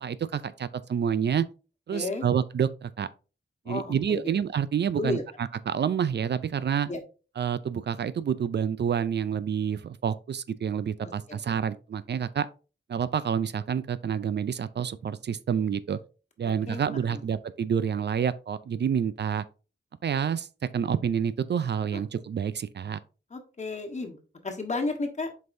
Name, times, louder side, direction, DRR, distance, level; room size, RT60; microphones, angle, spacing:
voice 1, 0.0-1.5 1.9-3.1 3.7-6.9 7.4-12.5 12.9-16.0 16.4-19.4 20.0-20.5 20.7-23.0, right 8 dB, 60° right, 0.4 m, -28 dB
voice 2, 1.9-2.3 3.6-4.3 5.0-5.2 6.9-7.0 11.0-11.4 16.7-16.8 17.1-17.2 21.9-22.0 23.3-24.2 24.4-25.3, left 3 dB, 35° left, 1.3 m, -33 dB
7.7 x 5.3 x 2.6 m
wide cardioid pair, 150°, 20 cm